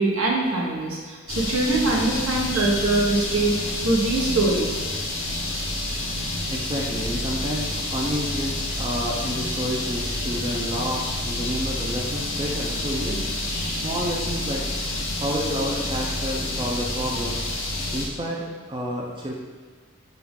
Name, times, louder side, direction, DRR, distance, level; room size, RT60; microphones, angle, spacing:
voice 1, 0.0-3.5 3.8-4.8 13.5-13.8, right 2 dB, 90° right, -2 dB, 0.9 m, -23 dB
sound 1, 1.3-18.1, left 1 dB, 65° left, 0.7 m, -29 dB
voice 2, 6.5-13.3 13.8-14.6 15.2-17.4 17.9-19.3, equal, 25° right, -2 dB, 0.4 m, -29 dB
5.8 x 2.3 x 3.5 m, 1.5 s
head